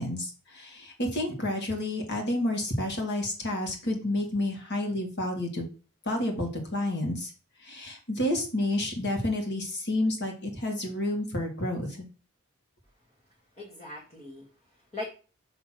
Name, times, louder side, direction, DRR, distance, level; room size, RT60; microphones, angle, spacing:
voice 1, 0.0-5.6 6.1-7.3 7.6-12.1, left 1 dB, 55° left, 3 dB, 1.9 m, -30 dB
voice 2, 13.5-15.0, left 2 dB, 30° left, -3 dB, 1.7 m, -41 dB
6.3 x 3.3 x 5.9 m, 0.36 s
head